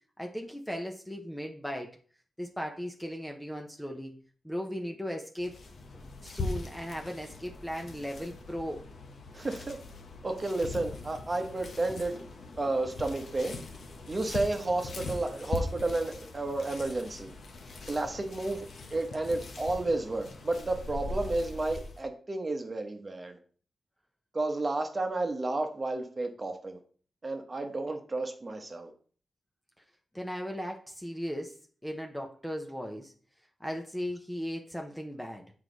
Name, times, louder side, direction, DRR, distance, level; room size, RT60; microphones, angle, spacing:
voice 1, 0.2-2.0 2.4-4.2 4.4-5.5 5.9-8.8 11.9-12.0 30.1-31.6 31.8-33.1 33.6-35.5, equal, 5° left, 2 dB, 0.8 m, -37 dB
sound 1, 5.4-22.0, left 3 dB, 65° left, 1.2 m, -41 dB
voice 2, 9.3-9.8 10.2-12.2 12.6-13.6 14.1-17.3 17.9-23.4 24.3-26.8 27.2-28.9, right 2 dB, 25° right, 5 dB, 1.1 m, -32 dB
8.1 x 4.8 x 4.0 m, 0.43 s
wide cardioid pair, 140°, 0 cm